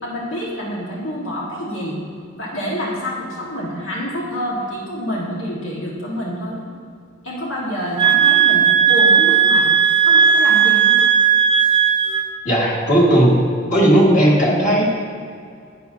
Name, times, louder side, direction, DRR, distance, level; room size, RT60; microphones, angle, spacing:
voice 1, 0.0-2.0 2.3-6.6 7.2-9.7 10.0-11.0, equal, 75° left, -5 dB, 1.6 m, -27 dB
sound 1, 8.0-12.3, right 7 dB, 25° right, 0.6 m, -15 dB
voice 2, 12.4-13.4 13.7-14.8, right 1 dB, 40° left, -5 dB, 1.8 m, -15 dB
10.5 x 8.8 x 2.7 m, 2.4 s
head